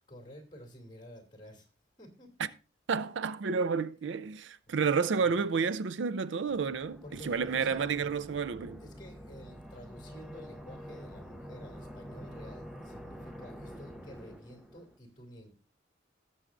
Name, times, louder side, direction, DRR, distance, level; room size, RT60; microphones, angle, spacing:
voice 1, 0.1-1.7 2.0-2.5 4.7-5.3 7.0-8.1 8.8-15.5, equal, 25° left, 2.6 m, -51 dB
voice 2, 2.9-8.8, right 5 dB, 70° right, 0.4 m, -30 dB
sound 1, 6.5-15.0, equal, ahead, 0.6 m, -47 dB
18.5 x 7.1 x 2.5 m
head